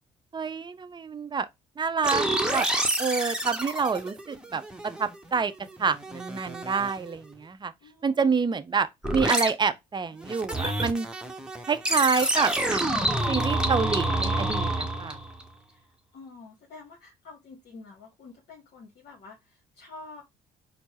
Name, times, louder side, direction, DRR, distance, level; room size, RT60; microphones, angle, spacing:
voice 1, 0.3-1.5 1.8-2.2 2.5-2.7 3.0-4.6 5.0-5.5 5.8-7.7 8.0-11.1 11.7-15.2, right 5 dB, 25° right, 0.6 m, -27 dB
sound 1, 2.0-5.3 5.6-7.1 9.0-9.5 10.2-15.4, right 1 dB, 5° right, 1.0 m, -28 dB
voice 2, 7.8-8.3 15.7-15.9 16.1-20.2, left 3 dB, 60° left, 1.1 m, -48 dB
4.4 x 2.0 x 4.1 m
hypercardioid pair, 60°, 19 cm